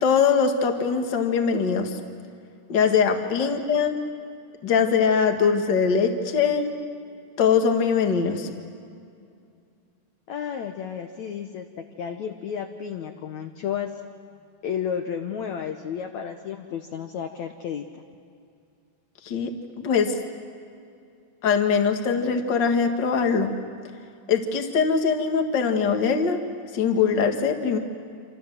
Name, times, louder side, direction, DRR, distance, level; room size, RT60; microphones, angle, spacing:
voice 1, 0.0-2.0 2.7-4.0 4.6-6.7 7.4-8.5 19.2-20.1 21.4-23.5 24.3-26.4 26.7-27.8, left 6 dB, 40° left, 5 dB, 1.6 m, -22 dB
voice 2, 10.3-11.7 12.0-13.9 14.6-18.0, left 8 dB, 70° left, 5 dB, 1.8 m, -32 dB
27.5 x 27.5 x 7.7 m, 2.4 s
omnidirectional pair, 4.8 m